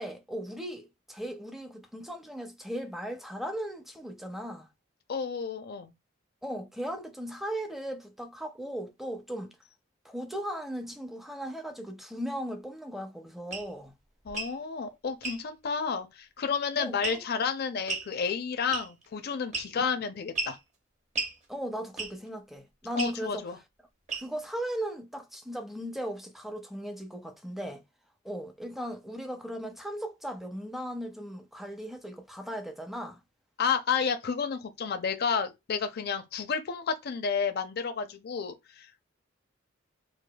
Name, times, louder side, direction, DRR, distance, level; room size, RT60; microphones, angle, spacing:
voice 1, 0.0-4.7 6.4-9.5 10.0-13.9 16.8-17.2 21.5-23.4 24.1-27.8 28.2-33.2, equal, ahead, 0.5 m, -37 dB
voice 2, 5.1-5.9 14.2-20.6 22.9-23.6 33.6-39.0, left 6 dB, 55° left, 0.5 m, -31 dB
sound 1, 13.5-13.7 14.3-14.6 15.2-15.4 17.0-17.4 17.9-18.1 18.7-19.1 19.5-19.9 20.4-20.6 21.2-21.4 22.0-22.3 23.0-23.2 24.1-24.4, right 3 dB, 35° right, 0.9 m, -34 dB
4.8 x 2.2 x 2.2 m
head